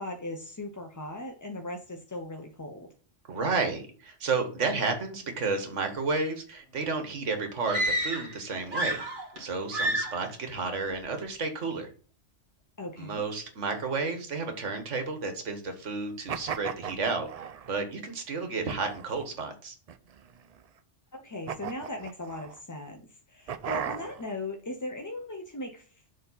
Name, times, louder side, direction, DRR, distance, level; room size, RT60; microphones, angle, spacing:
voice 1, 0.0-2.9 12.8-13.2 21.1-25.8, left 1 dB, 20° left, 3 dB, 0.5 m, -38 dB
voice 2, 3.3-9.0 9.4-11.9 13.0-19.7, right 4 dB, 90° right, 6 dB, 1.7 m, -32 dB
sound 1, 7.6-8.4 8.7-9.4 9.7-10.3, right 1 dB, 45° right, 1.9 m, -29 dB
sound 2, 16.3-17.8 18.7-19.2 19.9-20.6 21.5-22.6 23.5-24.3, right 8 dB, 65° right, 0.4 m, -37 dB
6.9 x 3.6 x 5.5 m, 0.41 s
omnidirectional pair, 1.2 m